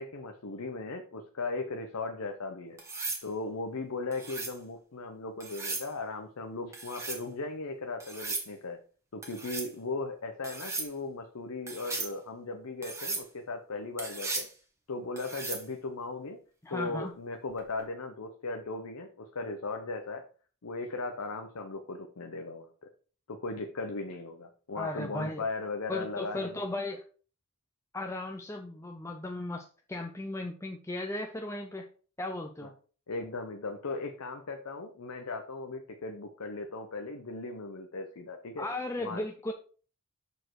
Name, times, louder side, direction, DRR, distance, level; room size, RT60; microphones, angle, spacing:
voice 1, 0.0-2.8 3.2-8.8 9.1-14.5 14.9-16.4 16.7-20.2 20.6-22.9 23.3-26.6 32.6-32.7 33.1-38.7 39.0-39.2, left 3 dB, 80° left, 5 dB, 0.7 m, -37 dB
sound 1, 2.8-3.2 4.1-4.6 5.4-5.9 6.7-7.2 8.0-8.5 9.2-9.7 10.4-10.9 11.7-12.1 12.8-13.3 14.0-14.5 15.2-15.7 17.6-17.8, right 3 dB, 15° right, 1.3 m, -36 dB
voice 2, 16.6-17.1 24.8-25.4 25.9-27.0 27.9-31.9 32.2-32.7 38.6-39.5, left 2 dB, 10° left, 3 dB, 0.4 m, -36 dB
6.7 x 4.4 x 4.6 m, 0.40 s
head